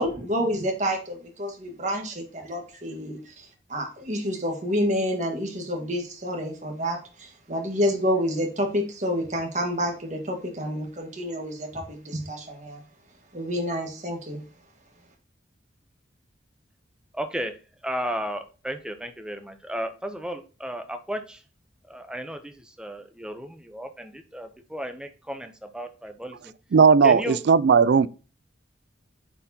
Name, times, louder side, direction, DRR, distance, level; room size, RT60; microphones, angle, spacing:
voice 1, 0.0-12.8 13.3-14.4, equal, 40° right, 1.6 m, -29 dB
voice 2, 17.1-17.6 17.8-21.4 21.9-26.5 27.0-27.4, equal, 5° right, 0.6 m, -34 dB
voice 3, 26.7-28.1, right 5 dB, 60° right, 0.3 m, -17 dB
8.9 x 4.4 x 2.8 m
head